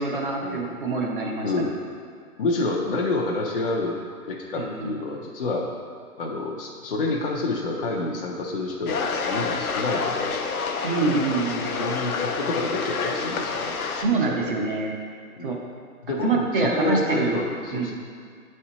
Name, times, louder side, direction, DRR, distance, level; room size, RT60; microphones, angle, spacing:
voice 1, 0.0-1.5 4.6-5.0 10.8-11.9 14.0-14.9 15.4-15.6 16.2-17.4 17.7-17.9, right 3 dB, 35° right, -1 dB, 0.8 m, -25 dB
voice 2, 1.4-1.7 2.4-4.0 4.3-5.7 6.2-10.4 11.0-11.4 11.8-13.7 14.2-14.5 15.4-15.6 16.1-17.9, left 2 dB, 40° left, -2 dB, 0.5 m, -28 dB
sound 1, 8.9-14.0, left 4 dB, 70° left, 0.7 m, -28 dB
8.9 x 4.3 x 2.8 m, 2.1 s
hypercardioid pair, 145°, 45 cm